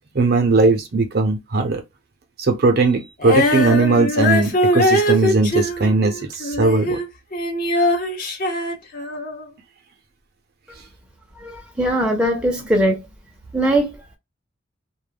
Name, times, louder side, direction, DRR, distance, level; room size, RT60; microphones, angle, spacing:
voice 1, 0.1-1.8 2.4-7.0, right 3 dB, 55° right, 0.6 m, -18 dB
Female singing, 3.2-9.4, left 1 dB, 45° left, 0.7 m, -21 dB
voice 2, 11.4-13.1 13.5-14.2, right 1 dB, 5° right, 0.6 m, -20 dB
2.2 x 2.1 x 3.3 m
head